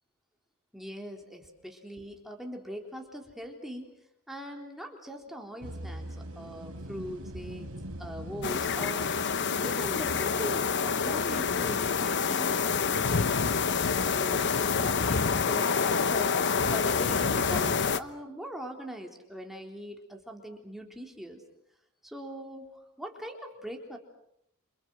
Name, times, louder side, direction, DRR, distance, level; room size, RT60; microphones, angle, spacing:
voice 1, 0.7-3.9 4.3-7.7 8.0-9.2 9.6-13.6 14.1-16.4 16.7-21.4 22.0-24.0, equal, ahead, 1 dB, 3.8 m, -41 dB
sound 1, 5.6-16.0, right 1 dB, 70° right, 4.9 m, -45 dB
sound 2, 8.4-18.0, left 5 dB, 55° left, 1.0 m, -27 dB
29.0 x 28.0 x 6.3 m, 0.76 s
head